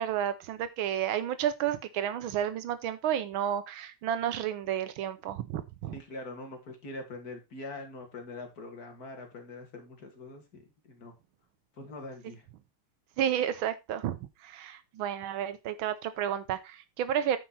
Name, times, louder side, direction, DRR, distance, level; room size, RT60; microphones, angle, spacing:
voice 1, 0.0-6.0 13.2-17.4, right 10 dB, 85° right, 1.5 m, -31 dB
voice 2, 5.9-11.1 11.7-12.5, left 2 dB, 50° left, 2.6 m, -43 dB
9.4 x 5.8 x 4.1 m
omnidirectional pair, 2.2 m